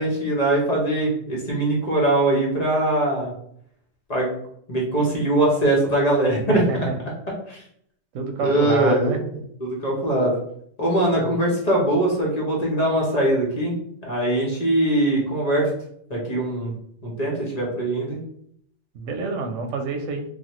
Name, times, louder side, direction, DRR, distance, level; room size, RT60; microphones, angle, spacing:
voice 1, 0.0-3.3 4.1-4.3 4.7-7.1 7.5-7.6 8.4-9.2 9.6-10.3 10.8-13.7 14.0-15.7 16.1-16.7 17.0-18.2, right 1 dB, 35° left, -3 dB, 0.9 m, -22 dB
voice 2, 6.5-6.9 8.1-9.2 11.2-11.3 18.9-20.2, right 4 dB, 85° right, 5 dB, 1.0 m, -27 dB
3.3 x 2.3 x 2.9 m, 0.69 s
omnidirectional pair, 1.3 m